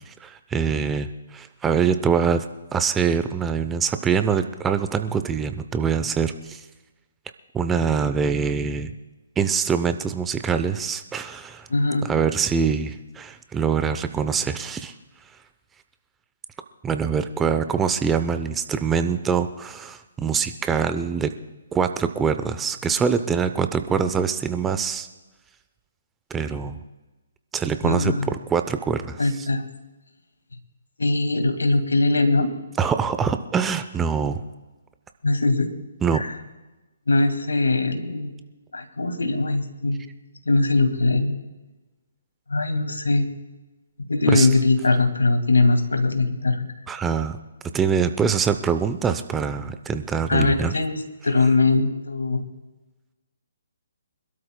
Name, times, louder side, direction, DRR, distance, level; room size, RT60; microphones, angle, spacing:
voice 1, 0.1-2.5 2.7-6.6 7.5-8.9 9.4-11.7 12.0-14.9 16.8-21.3 21.7-25.1 26.3-26.8 27.5-29.5 32.8-34.4 36.0-36.2 44.3-44.5 46.9-47.4 47.7-50.7, right 6 dB, 10° right, 9 dB, 0.7 m, -24 dB
voice 2, 11.7-12.1 27.8-28.3 29.2-29.6 31.0-32.5 35.2-35.7 36.1-36.3 37.1-38.4 38.7-40.0 40.5-41.4 42.5-43.3 44.1-46.7 50.3-51.0 51.2-52.4, left 3 dB, 85° left, 7 dB, 2.1 m, -21 dB
26.0 x 12.5 x 2.3 m, 1.2 s
hypercardioid pair, 140°, 0 cm